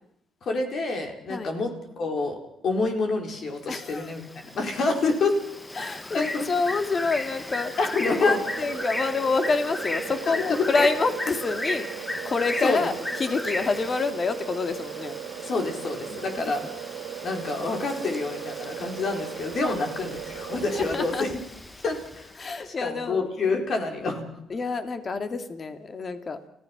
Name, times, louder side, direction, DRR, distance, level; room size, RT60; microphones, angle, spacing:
voice 1, 0.4-5.4 6.1-6.4 7.8-8.4 10.3-10.9 12.6-12.9 15.4-16.6 17.2-21.3 21.8-24.3, left 3 dB, 60° left, 3 dB, 4.7 m, -28 dB
voice 2, 3.7-4.1 5.8-7.7 8.1-12.9 13.2-15.2 16.1-16.3 19.6-19.8 20.7-21.3 22.4-23.3 24.5-26.5, left 4 dB, 40° left, 8 dB, 2.2 m, -27 dB
Bird, 3.7-22.5, left 1 dB, 15° left, 1.3 m, -36 dB
sound 1, 8.0-21.3, right 11 dB, 80° right, 1.1 m, -38 dB
30.0 x 16.0 x 6.1 m, 0.76 s
cardioid pair, 90°, 0 cm